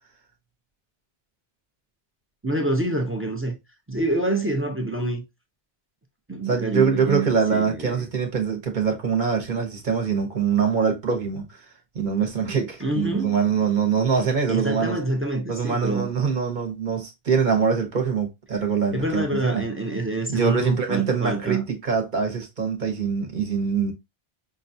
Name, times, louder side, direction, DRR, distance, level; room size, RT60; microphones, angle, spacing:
voice 1, 2.4-3.5 3.9-5.2 6.3-8.1 12.8-13.4 14.5-16.1 18.9-21.6, right 2 dB, 15° right, 0.5 m, -26 dB
voice 2, 6.5-11.6 11.9-15.0 15.5-19.7 20.3-23.9, right 6 dB, 50° right, 1.0 m, -24 dB
5.5 x 2.3 x 2.7 m
omnidirectional pair, 1.1 m